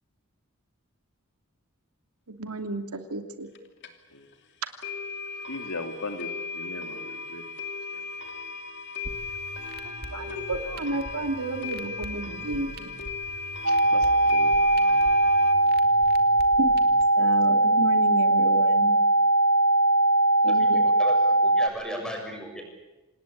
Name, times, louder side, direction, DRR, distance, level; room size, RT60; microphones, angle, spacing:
voice 1, 2.3-3.5 9.8-12.9 16.6-16.8 17.2-19.0 20.4-20.8, right 2 dB, 90° right, 7 dB, 2.7 m, -32 dB
sound 1, 3.5-3.6 3.8-3.9 4.3-4.4 4.8-15.5, left 4 dB, 55° left, 2.7 m, -37 dB
voice 2, 5.5-7.4 7.9-8.0 13.7-14.6, left 2 dB, 75° left, 6 dB, 2.9 m, -38 dB
sound 2, 9.0-17.0, right 1 dB, 45° right, 2.3 m, -44 dB
sound 3, 13.7-21.7, right 2 dB, 70° right, 1.7 m, -20 dB
voice 3, 20.5-22.6, equal, 5° left, 2 dB, 7.0 m, -36 dB
27.5 x 19.0 x 8.6 m, 1.1 s
head